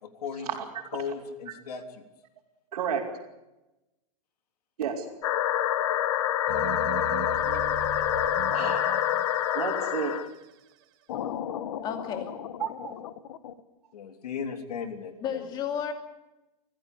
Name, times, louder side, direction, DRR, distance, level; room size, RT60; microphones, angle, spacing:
voice 1, 0.0-0.5 0.9-2.0 13.9-15.5, left 6 dB, 80° left, 7 dB, 3.3 m, -36 dB
voice 2, 2.7-3.1 4.8-5.0 8.0-8.2 8.5-9.0 9.5-10.2 12.6-12.9, right 8 dB, 85° right, -5 dB, 4.1 m, -32 dB
sound 1, 5.2-10.3 11.1-13.5, left 11 dB, 55° left, 1.3 m, -28 dB
sound 2, 6.5-10.8, right 9 dB, 40° right, 1.8 m, -40 dB
voice 3, 11.8-12.3 15.2-15.9, left 8 dB, 20° left, 6 dB, 2.6 m, -32 dB
24.5 x 16.0 x 8.4 m, 0.99 s
supercardioid pair, 170°, 20 cm